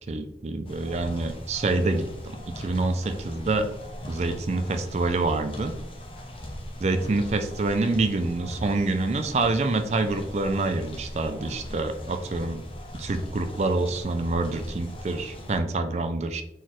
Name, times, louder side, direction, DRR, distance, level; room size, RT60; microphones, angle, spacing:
voice 1, 0.1-3.7 4.1-5.7 6.8-12.6 13.0-16.4, right 2 dB, 40° right, 8 dB, 0.3 m, -26 dB
sound 1, 0.7-15.6, equal, 30° left, 0.7 m, -39 dB
4.3 x 3.8 x 3.0 m, 0.83 s
head